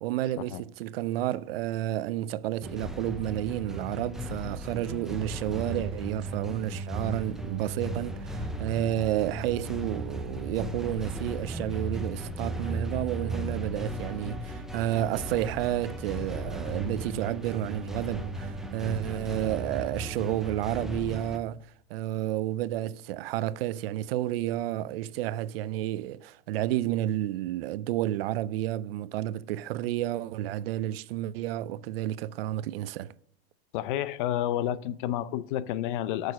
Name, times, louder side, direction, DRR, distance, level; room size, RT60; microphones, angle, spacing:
voice 1, 0.0-33.1, right 13 dB, 70° right, 0.5 m, -31 dB
sound 1, 2.6-21.4, right 1 dB, ahead, 0.5 m, -36 dB
voice 2, 33.7-36.3, left 12 dB, 55° left, 0.6 m, -30 dB
6.5 x 6.2 x 6.3 m
supercardioid pair, 140°, 31 cm